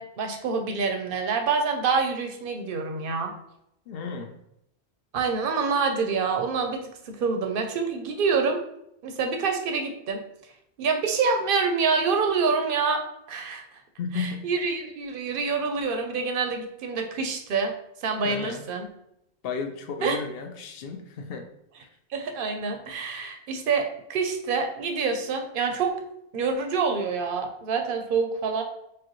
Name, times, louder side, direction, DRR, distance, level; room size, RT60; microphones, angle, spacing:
voice 1, 0.0-3.3 5.1-8.6 9.0-10.2 10.8-13.0 13.3-13.6 14.1-17.7 18.0-18.9 20.0-20.2 22.1-25.9 26.3-28.6, right 5 dB, 60° right, 5 dB, 0.7 m, -26 dB
voice 2, 3.9-4.3 14.0-14.5 18.2-18.6 19.4-21.4, left 5 dB, 65° left, 5 dB, 0.7 m, -33 dB
4.8 x 2.3 x 2.9 m, 0.79 s
omnidirectional pair, 1.2 m